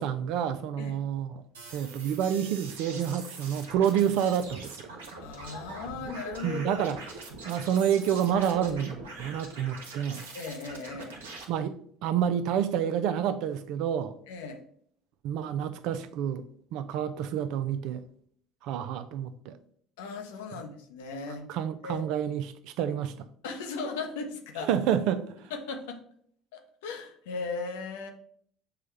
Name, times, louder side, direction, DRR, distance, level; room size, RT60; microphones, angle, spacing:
voice 1, 0.0-1.5 1.7-4.9 6.4-7.0 7.4-10.3 11.5-14.2 15.2-18.0 18.6-19.6 21.5-23.3 24.6-25.3, right 9 dB, 70° right, 0.4 m, -29 dB
sound 1, 1.5-11.4, right 3 dB, 90° right, 0.8 m, -43 dB
voice 2, 5.2-6.8 10.3-11.2 14.3-14.6 20.0-21.5 21.8-22.1 23.4-24.7 25.5-26.0 26.5-28.1, left 4 dB, 80° left, 0.6 m, -37 dB
6.7 x 2.2 x 3.2 m
hypercardioid pair, 70°, 0 cm